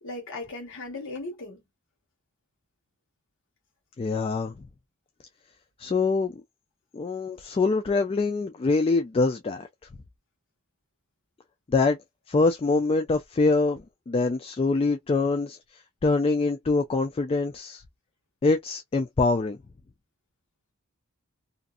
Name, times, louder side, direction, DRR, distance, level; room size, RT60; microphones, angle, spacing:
voice 1, 0.0-1.6, left 2 dB, 65° left, 1.2 m, -37 dB
voice 2, 4.0-4.7 5.8-6.4 6.9-9.7 11.7-12.0 12.3-17.8 18.4-19.6, left 3 dB, 25° left, 0.3 m, -24 dB
2.6 x 2.5 x 2.4 m
head